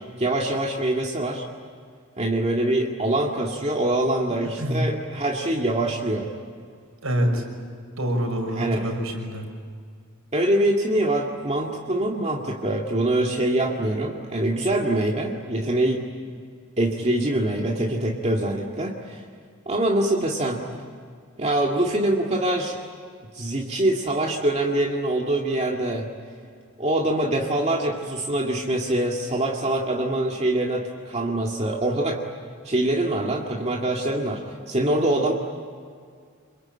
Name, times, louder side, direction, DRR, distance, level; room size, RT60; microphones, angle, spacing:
voice 1, 0.2-1.5 2.2-6.3 8.5-8.9 10.3-16.0 16.8-19.2 19.7-20.6 21.4-22.8 23.3-26.1 26.8-32.2 32.6-35.3, right 1 dB, 30° right, -1 dB, 2.1 m, -24 dB
voice 2, 7.0-7.4 8.0-9.4, equal, 80° right, 3 dB, 6.1 m, -25 dB
27.0 x 23.0 x 8.8 m, 2.1 s
head